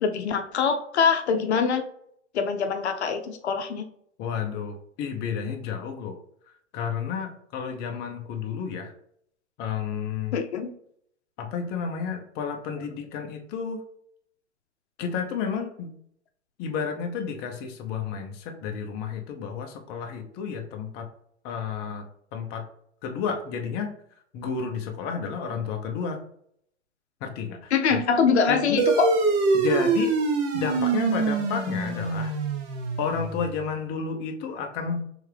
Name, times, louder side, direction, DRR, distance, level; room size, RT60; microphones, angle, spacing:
voice 1, 0.0-1.8 2.3-3.8 10.3-10.7 27.7-29.1, left 6 dB, 65° left, 6 dB, 0.7 m, -24 dB
voice 2, 4.2-6.2 6.7-8.9 9.6-10.4 11.4-13.8 15.0-15.9 16.6-21.1 21.4-22.1 22.3-22.6 23.0-23.9 24.3-26.2 27.2-28.0 28.5-28.8 29.5-30.1 30.5-32.3 33.0-35.0, left 6 dB, 25° left, 3 dB, 0.7 m, -31 dB
sound 1, 28.8-33.6, right 4 dB, 30° right, 0.8 m, -25 dB
4.5 x 3.3 x 3.3 m, 0.68 s
figure-of-eight pair, 110°, 36 cm